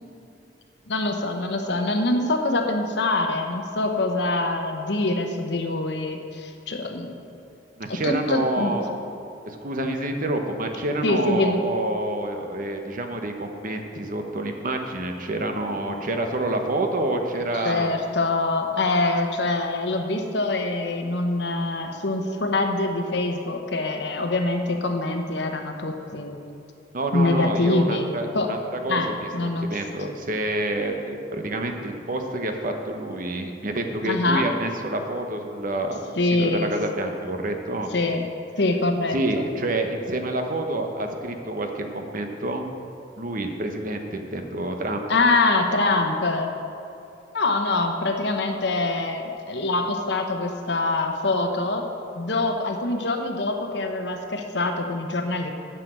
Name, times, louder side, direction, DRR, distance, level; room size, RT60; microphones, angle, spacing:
voice 1, 0.9-7.2 7.9-8.8 11.0-11.6 17.6-26.4 27.1-28.0 28.3-28.5 28.9-29.7 34.0-34.5 36.2-36.7 37.9-38.2 38.6-39.5 45.1-46.5 47.3-51.8 52.1-55.5, left 2 dB, 70° left, 4 dB, 1.1 m, -24 dB
voice 2, 7.8-8.9 9.4-17.9 26.9-29.3 29.6-37.9 39.1-42.7 43.2-45.0, right 1 dB, 50° right, 4 dB, 1.0 m, -28 dB
10.0 x 7.0 x 7.5 m, 2.6 s
head